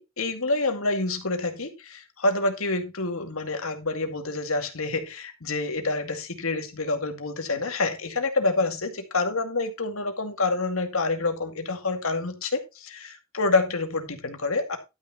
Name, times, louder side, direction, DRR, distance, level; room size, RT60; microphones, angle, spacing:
voice 1, 0.0-14.8, left 3 dB, 80° left, 6 dB, 2.1 m, -27 dB
12.0 x 6.3 x 4.2 m, 0.26 s
head